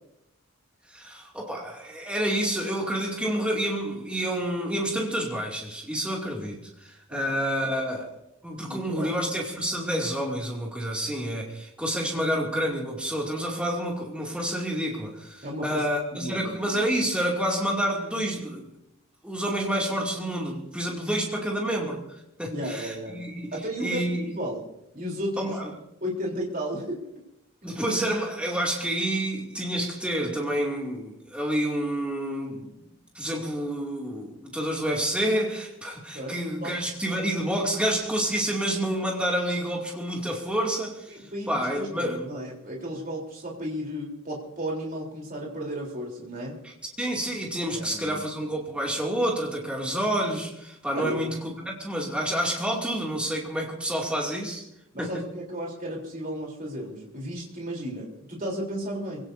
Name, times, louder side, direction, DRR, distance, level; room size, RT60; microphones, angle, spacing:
voice 1, 0.9-8.1 8.4-18.7 19.2-24.3 25.4-25.7 27.6-32.8 33.1-42.3 46.6-46.7 47.0-54.7 55.0-55.2, right 1 dB, 5° right, -2 dB, 2.5 m, -29 dB
voice 2, 8.6-9.2 15.4-15.9 16.2-16.5 22.5-23.2 23.5-24.6 24.9-25.6 26.0-27.0 27.6-27.7 36.1-36.7 41.1-46.6 47.7-48.2 50.9-51.2 54.9-59.2, equal, 40° right, -2 dB, 3.6 m, -34 dB
25.5 x 17.0 x 2.7 m, 0.82 s
head